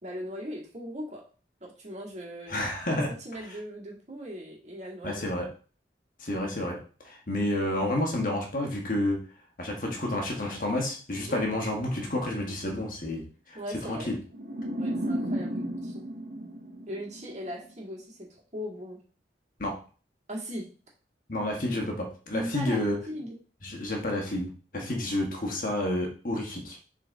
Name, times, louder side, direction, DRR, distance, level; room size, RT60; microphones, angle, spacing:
voice 1, 0.0-1.2 1.6-5.3 11.3-11.4 13.5-14.1 14.7-16.0 16.9-19.0 20.3-20.7 22.3-23.4 24.8-25.0, equal, 40° right, -3 dB, 2.1 m, -39 dB
voice 2, 2.5-3.1 5.0-5.5 6.2-6.8 7.0-9.2 9.6-13.6 13.9-14.2 19.6-19.8 21.3-23.0 23.6-26.8, left 1 dB, 50° left, 1 dB, 1.3 m, -30 dB
sound 1, 14.3-17.5, equal, 55° right, 0.8 m, -33 dB
7.0 x 3.9 x 3.6 m, 0.38 s
head